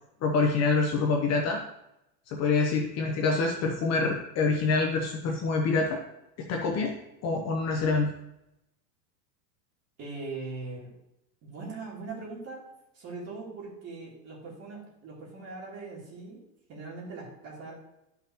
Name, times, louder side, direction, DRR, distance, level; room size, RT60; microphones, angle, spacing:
voice 1, 0.2-1.6 2.3-6.0 6.4-7.0 7.2-8.1, left 4 dB, 30° left, 1 dB, 0.9 m, -26 dB
voice 2, 10.0-10.9 11.4-17.7, right 3 dB, 30° right, -5 dB, 3.3 m, -41 dB
12.0 x 5.8 x 3.0 m, 0.86 s
supercardioid pair, 145°, 50 cm